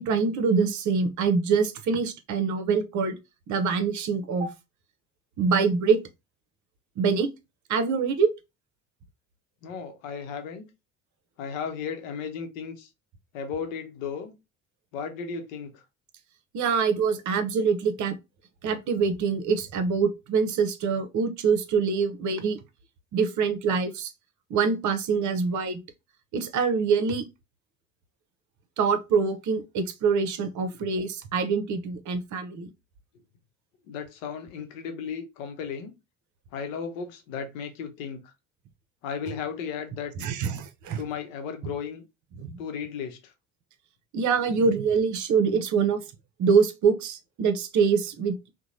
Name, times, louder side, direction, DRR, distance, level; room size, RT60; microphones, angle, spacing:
voice 1, 0.0-3.2 3.5-4.5 5.4-6.0 7.0-7.3 7.7-8.3 16.5-18.2 18.6-22.6 23.1-24.1 24.5-25.8 26.3-27.2 28.8-32.7 40.2-41.0 42.4-42.6 44.1-46.0 46.4-48.5, right 5 dB, 50° right, 0.7 m, -25 dB
voice 2, 9.6-10.7 11.4-12.9 13.3-14.3 14.9-15.8 33.9-35.9 36.5-38.2 39.0-40.3 41.0-42.0 42.6-43.3, left 6 dB, 75° left, 0.8 m, -35 dB
2.9 x 2.2 x 2.5 m
hypercardioid pair, 60°, 40 cm